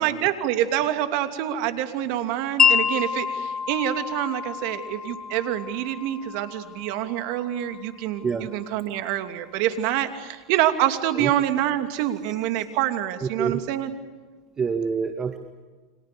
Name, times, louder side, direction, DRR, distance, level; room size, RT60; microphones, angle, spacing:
voice 1, 0.0-13.9, right 12 dB, 60° right, 8 dB, 2.8 m, -26 dB
Wind chime, 2.6-8.7, left 7 dB, 25° left, 1.0 m, -28 dB
voice 2, 14.6-15.4, right 5 dB, 25° right, 8 dB, 1.9 m, -26 dB
29.5 x 26.0 x 7.0 m, 1.4 s
hypercardioid pair, 95°, 2 cm